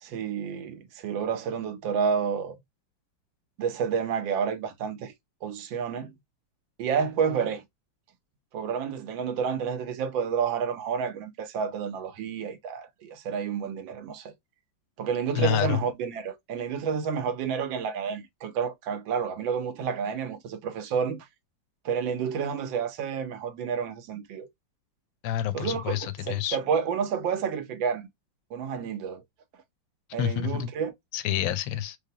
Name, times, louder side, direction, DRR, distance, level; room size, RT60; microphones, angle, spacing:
voice 1, 0.0-2.6 3.6-5.1 5.4-6.1 6.8-7.6 8.5-14.3 15.0-21.3 21.8-24.5 25.5-28.1 28.5-29.2 30.1-30.9, right 6 dB, 80° right, 1.5 m, -30 dB
voice 2, 15.3-15.8 25.2-26.6 30.2-30.7 31.1-32.0, left 10 dB, 80° left, 1.4 m, -28 dB
4.8 x 2.0 x 2.7 m
omnidirectional pair, 2.1 m